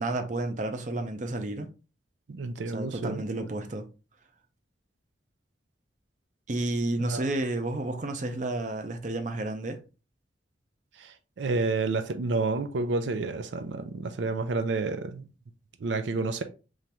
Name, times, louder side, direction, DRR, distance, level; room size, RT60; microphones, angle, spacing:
voice 1, 0.0-1.7 2.7-3.9 6.5-9.8, right 2 dB, 45° right, 0.6 m, -31 dB
voice 2, 2.3-3.2 7.1-7.3 11.0-15.3 15.8-16.4, right 3 dB, 90° right, 0.5 m, -30 dB
3.8 x 3.2 x 2.9 m
head